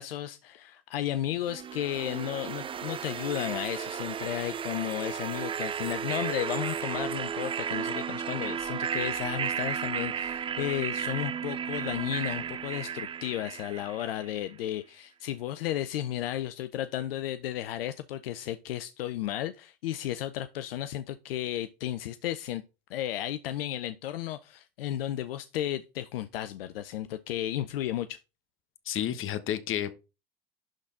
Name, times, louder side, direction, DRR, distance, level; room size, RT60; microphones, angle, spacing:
voice 1, 0.0-22.6 22.9-28.2, left 12 dB, 75° left, 0.6 m, -33 dB
sound 1, 1.5-14.4, right 8 dB, 20° right, 0.3 m, -34 dB
voice 2, 28.8-29.9, left 10 dB, 45° left, 1.2 m, -31 dB
11.5 x 4.0 x 3.8 m
hypercardioid pair, 70°, 29 cm